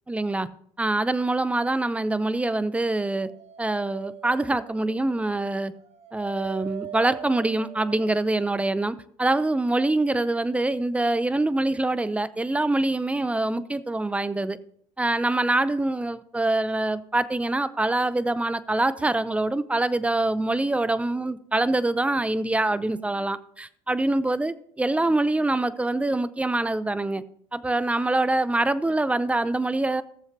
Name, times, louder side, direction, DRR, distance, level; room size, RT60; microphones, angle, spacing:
voice 1, 0.1-0.5 0.8-3.3 3.6-5.7 6.1-14.6 15.0-27.2 27.5-30.0, right 2 dB, 10° right, 0.5 m, -25 dB
Dog, 2.9-8.4, right 8 dB, 45° right, 1.1 m, -42 dB
17.0 x 7.2 x 2.7 m
hypercardioid pair, 70°, 15 cm